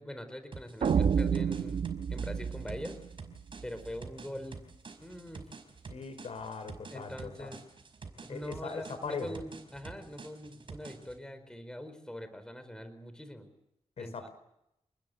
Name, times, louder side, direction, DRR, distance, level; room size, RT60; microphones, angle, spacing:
voice 1, 0.0-3.0 3.6-4.7 5.0-5.4 6.9-7.6 8.2-13.5 14.0-14.3, equal, 5° left, 9 dB, 4.2 m, -43 dB
sound 1, 0.5-11.2, right 4 dB, 50° right, 5.1 m, -48 dB
sound 2, 0.8-3.9, right 7 dB, 75° right, 1.4 m, -30 dB
voice 2, 5.9-7.5 8.3-9.4 14.0-14.3, left 5 dB, 75° left, 10 dB, 5.1 m, -40 dB
29.0 x 20.5 x 8.2 m, 0.81 s
wide cardioid pair, 115°, 11 cm